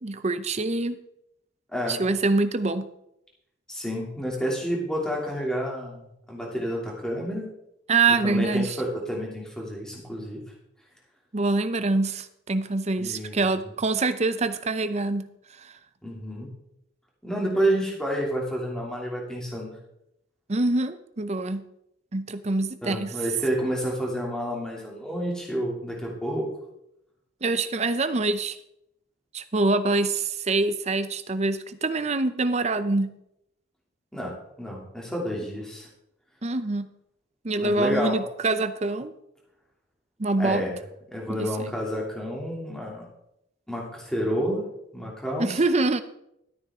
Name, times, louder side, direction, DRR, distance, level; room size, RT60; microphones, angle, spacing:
voice 1, 0.0-1.0 1.9-2.9 7.9-8.7 11.3-15.3 20.5-21.6 22.1-23.1 27.4-28.6 29.3-33.1 36.4-36.9 37.4-39.1 40.2-40.6 41.3-41.7 45.4-46.0, right 3 dB, 35° right, 11 dB, 0.7 m, -25 dB
voice 2, 3.7-7.5 8.1-10.4 13.0-13.6 16.0-16.5 17.2-19.7 22.8-26.5 34.1-35.9 37.6-38.2 40.4-40.8 41.1-43.1 43.7-44.6 44.9-45.6, equal, 5° left, -3 dB, 2.8 m, -29 dB
13.0 x 9.4 x 3.7 m, 0.80 s
head